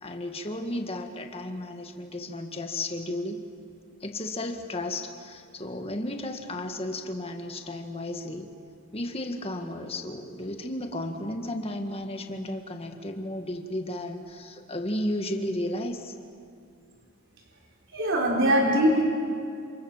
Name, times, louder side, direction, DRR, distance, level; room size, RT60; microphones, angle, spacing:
voice 1, 0.0-3.4 4.0-8.5 8.9-16.2, left 1 dB, 25° left, 4 dB, 1.9 m, -33 dB
voice 2, 17.9-19.0, equal, 55° right, -2 dB, 3.9 m, -22 dB
29.0 x 27.5 x 7.4 m, 2.4 s
head